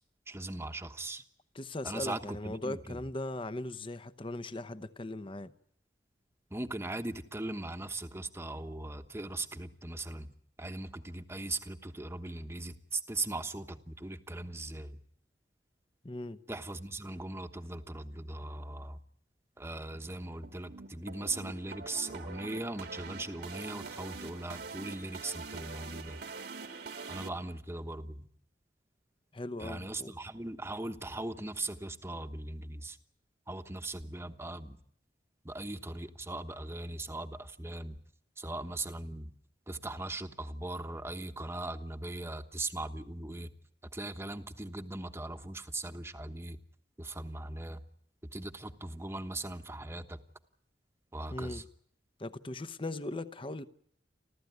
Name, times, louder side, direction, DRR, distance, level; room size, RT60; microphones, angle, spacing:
voice 1, 0.3-1.2 1.8-3.0 6.5-10.3 10.6-15.0 16.5-19.0 19.6-26.2 27.1-28.3 29.6-33.0 33.5-34.8 35.4-38.0 38.4-39.3 39.7-43.5 43.9-46.6 47.0-47.8 48.3-50.2 51.1-51.6, right 2 dB, 15° right, 1.1 m, -39 dB
voice 2, 1.5-5.5 16.0-16.4 29.3-30.1 51.3-51.6 52.2-53.6, left 2 dB, 30° left, 0.9 m, -39 dB
sound 1, 20.4-27.3, right 4 dB, 60° right, 1.7 m, -44 dB
30.0 x 13.0 x 9.5 m
head